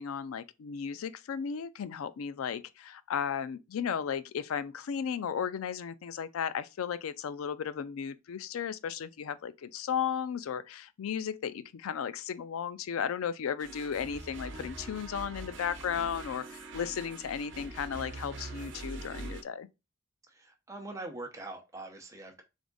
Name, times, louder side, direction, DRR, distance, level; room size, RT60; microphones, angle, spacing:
voice 1, 0.0-19.7, left 7 dB, 90° left, 0.4 m, -35 dB
sound 1, 13.6-19.4, right 2 dB, 60° right, 0.8 m, -43 dB
voice 2, 20.3-22.4, right 2 dB, 15° right, 0.8 m, -43 dB
3.6 x 3.5 x 3.9 m
head